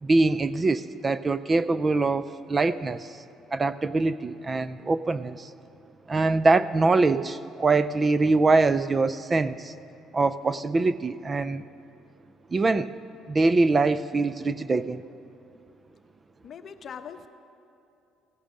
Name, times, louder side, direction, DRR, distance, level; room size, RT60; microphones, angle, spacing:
voice 1, 0.0-3.1 3.5-5.5 6.1-9.7 10.1-11.6 12.5-12.9 13.3-15.0, right 3 dB, 25° right, 15 dB, 0.3 m, -23 dB
voice 2, 16.4-17.3, left 7 dB, 45° left, 8 dB, 0.8 m, -41 dB
16.5 x 11.5 x 6.4 m, 2.6 s
cardioid pair, 115°, 0 cm